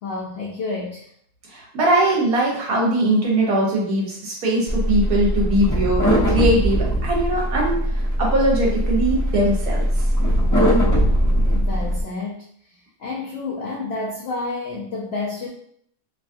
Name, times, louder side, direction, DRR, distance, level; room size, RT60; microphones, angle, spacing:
voice 1, 0.0-1.1 11.5-15.5, left 3 dB, 85° left, -2 dB, 0.5 m, -30 dB
voice 2, 1.5-10.0, right 1 dB, 70° right, -3 dB, 1.4 m, -21 dB
sound 1, 4.7-12.0, equal, 25° left, 0.4 m, -20 dB
3.1 x 2.3 x 2.5 m, 0.65 s
omnidirectional pair, 1.6 m